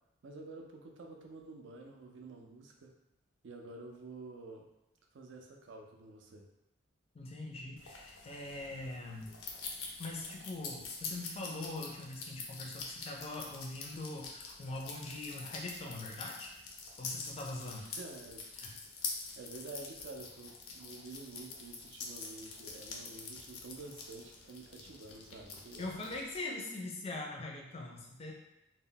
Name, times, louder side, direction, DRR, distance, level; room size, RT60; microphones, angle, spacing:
voice 1, 0.2-2.9 3.4-4.7 5.1-6.5 11.1-11.2 17.7-18.5 19.4-25.9, right 3 dB, 60° right, 1 dB, 0.4 m, -49 dB
voice 2, 7.1-9.4 10.0-16.5 17.0-17.9 18.6-18.7 25.8-28.3, left 2 dB, 30° left, 0 dB, 0.4 m, -42 dB
sound 1, 7.8-26.4, left 4 dB, 85° left, 0.5 m, -46 dB
2.1 x 2.0 x 3.7 m, 0.89 s
head